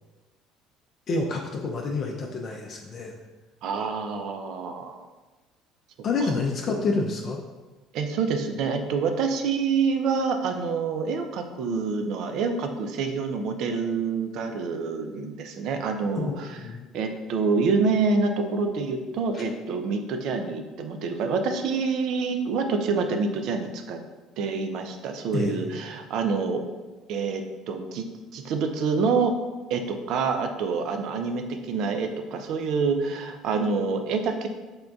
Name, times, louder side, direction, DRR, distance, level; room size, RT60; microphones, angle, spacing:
voice 1, 1.1-3.1 6.0-7.4 16.2-16.9 19.3-19.4 25.3-25.7, left 3 dB, 45° left, 1 dB, 0.4 m, -28 dB
voice 2, 3.6-5.1 7.9-16.6 16.9-24.0 24.4-26.6 27.1-28.1 28.3-29.3 29.7-34.5, right 4 dB, 60° right, 6 dB, 0.4 m, -27 dB
3.6 x 2.2 x 3.8 m, 1.2 s
hypercardioid pair, 60°, 0 cm